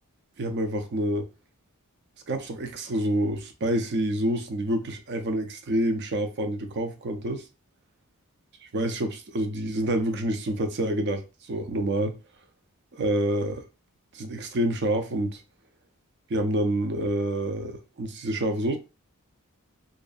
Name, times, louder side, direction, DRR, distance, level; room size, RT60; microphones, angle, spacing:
voice 1, 0.4-1.3 2.3-7.5 8.7-12.1 12.9-13.6 14.1-15.4 16.3-18.8, right 1 dB, 55° right, 0.5 m, -27 dB
2.6 x 2.4 x 2.3 m
head